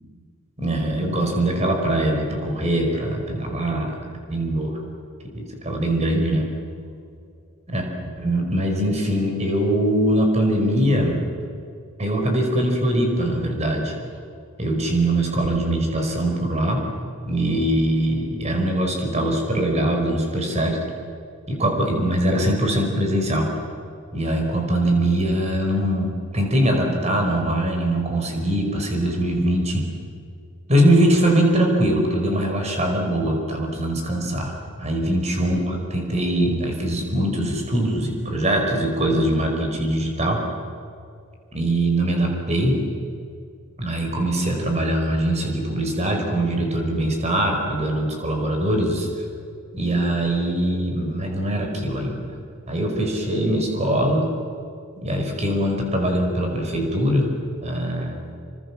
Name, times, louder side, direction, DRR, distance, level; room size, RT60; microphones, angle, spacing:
voice 1, 0.6-4.0 4.3-4.8 5.3-6.5 7.7-7.8 8.2-11.2 12.0-13.9 14.6-16.8 17.2-20.8 21.5-23.5 24.1-29.9 30.7-34.5 34.8-40.4 41.5-42.8 43.8-49.2 49.7-52.4 52.7-54.3 55.0-57.3 57.6-58.2, right 1 dB, 30° right, 2 dB, 5.0 m, -22 dB
27.5 x 25.5 x 7.3 m, 2.5 s
head